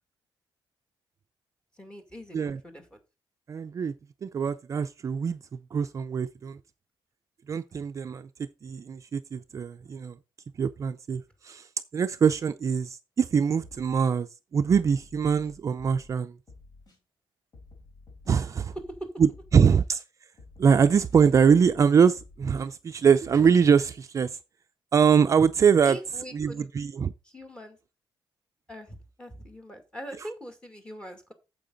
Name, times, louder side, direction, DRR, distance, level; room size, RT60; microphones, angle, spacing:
voice 1, 1.8-3.0 18.9-19.1 25.8-26.7 27.2-27.8 28.7-31.3, equal, 10° left, 2.2 m, -42 dB
voice 2, 3.5-3.9 4.2-5.4 5.7-6.6 7.5-8.3 8.6-10.1 10.6-11.7 11.9-16.3 18.3-18.7 19.2-20.0 20.6-24.4 24.9-26.0 26.3-27.1, right 6 dB, 40° right, 0.5 m, -23 dB
sound 1, 13.2-13.3 13.6-14.1 14.7-16.1 16.5-17.0 17.5-19.0 19.3-19.8 20.4-21.8 22.2-22.7 23.2-23.4, left 3 dB, 50° left, 4.1 m, -51 dB
8.9 x 7.6 x 3.9 m
wide cardioid pair, 155°, 8 cm